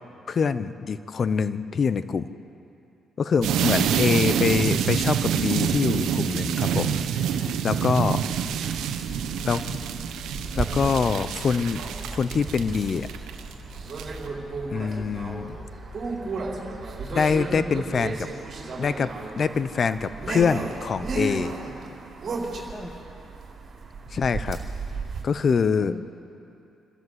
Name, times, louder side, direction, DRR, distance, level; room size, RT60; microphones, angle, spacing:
voice 1, 0.3-2.3 3.2-7.0 7.6-8.2 9.4-9.7 10.5-11.8 12.1-13.1 14.7-15.6 17.1-18.3 18.8-21.5 24.1-24.6 25.2-25.9, left 5 dB, 45° left, 13 dB, 0.8 m, -24 dB
sound 1, 3.4-13.5 13.9-14.2, right 9 dB, 85° right, 1.1 m, -27 dB
voice 2, 3.5-4.3 7.3-7.6 17.4-17.9 22.7-23.0 25.8-26.0, equal, 10° left, 0 dB, 1.9 m, -40 dB
sound 2, 4.4-18.2, left 2 dB, 30° left, 2.0 m, -45 dB
sound 3, 8.3-25.2, right 3 dB, 45° right, 4.2 m, -34 dB
27.5 x 13.0 x 8.1 m, 2.7 s
cardioid pair, 90°, 0 cm